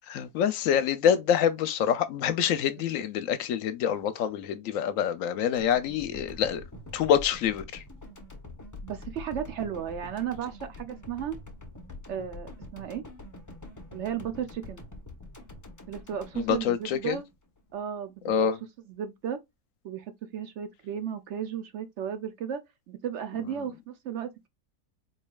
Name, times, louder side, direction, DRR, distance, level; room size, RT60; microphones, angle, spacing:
voice 1, 0.1-6.6 6.9-7.8 16.4-17.2 18.2-18.6, left 8 dB, 70° left, 0.9 m, -26 dB
sound 1, 5.6-17.8, left 2 dB, 20° left, 0.4 m, -45 dB
voice 2, 8.8-11.4 12.1-13.0 13.9-14.8 15.9-17.2 17.7-18.5 18.9-19.4 19.8-24.5, right 9 dB, 65° right, 0.7 m, -34 dB
4.3 x 3.2 x 2.3 m
omnidirectional pair, 1.6 m